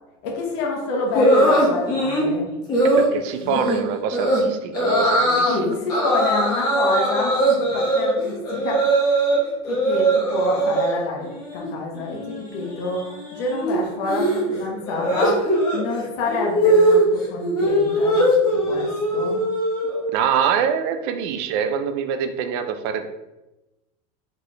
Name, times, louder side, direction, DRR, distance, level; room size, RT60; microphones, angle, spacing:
voice 1, 0.2-2.4 3.4-3.6 5.5-9.1 9.7-11.3 11.5-18.2 18.5-19.4, left 3 dB, 55° left, -1 dB, 1.0 m, -28 dB
sound 1, 1.1-2.3 2.7-3.1 3.5-3.8 4.1-4.4 4.7-5.5 5.9-9.4 9.6-10.9 11.3-11.7 11.9-20.1, right 1 dB, 20° left, 1.1 m, -20 dB
voice 2, 2.8-5.8 20.1-23.1, right 7 dB, 50° right, 8 dB, 0.4 m, -25 dB
4.1 x 3.2 x 3.2 m, 1.0 s
cardioid pair, 180°, 17 cm